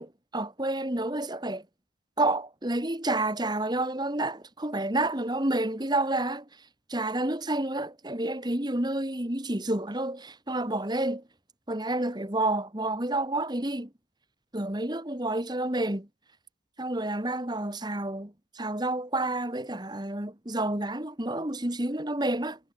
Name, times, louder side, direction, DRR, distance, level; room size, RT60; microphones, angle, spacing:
voice 1, 0.0-1.6 2.2-6.4 6.9-11.2 11.7-13.9 14.5-16.1 16.8-22.6, right 2 dB, 20° right, 1.7 m, -29 dB
head